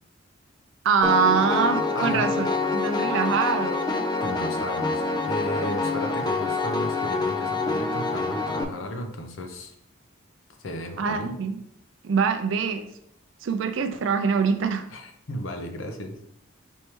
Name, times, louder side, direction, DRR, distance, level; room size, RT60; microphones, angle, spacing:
voice 1, 0.8-3.9 11.0-11.6 12.0-12.9 13.4-14.8, right 5 dB, 70° right, 7 dB, 0.4 m, -24 dB
Piano, 1.0-8.6, left 3 dB, 20° left, 0.3 m, -26 dB
voice 2, 1.9-2.3 4.2-9.7 10.6-11.4 14.9-16.2, left 1 dB, 75° left, 5 dB, 0.7 m, -34 dB
5.3 x 3.0 x 3.3 m, 0.75 s
head